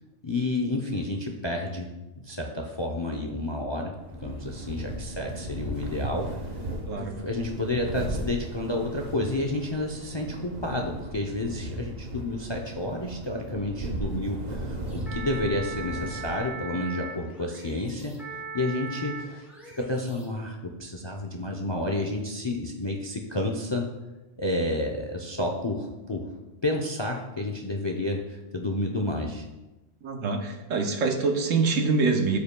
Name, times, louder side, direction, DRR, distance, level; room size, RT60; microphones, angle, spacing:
voice 1, 0.2-1.9 2.2-6.3 7.0-19.5 19.7-23.9 24.4-26.3 26.6-29.4, left 2 dB, 30° left, 1 dB, 0.5 m, -30 dB
sound 1, 4.0-16.7, right 1 dB, 40° right, 0.8 m, -36 dB
sound 2, 14.9-20.2, right 4 dB, ahead, 2.0 m, -39 dB
voice 2, 30.0-32.4, right 4 dB, 80° right, 4 dB, 1.3 m, -25 dB
13.0 x 5.6 x 2.2 m, 1.1 s
omnidirectional pair, 1.3 m